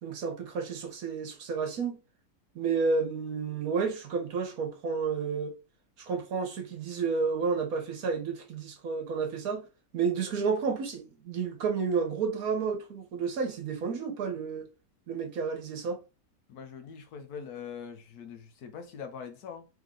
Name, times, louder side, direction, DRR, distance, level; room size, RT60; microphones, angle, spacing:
voice 1, 0.0-2.0 2.5-5.5 6.0-9.6 9.9-14.7 15.1-16.0, right 5 dB, 65° right, 1.2 m, -31 dB
voice 2, 16.5-19.7, left 7 dB, 70° left, 1.2 m, -42 dB
3.4 x 3.4 x 3.7 m
omnidirectional pair, 1.8 m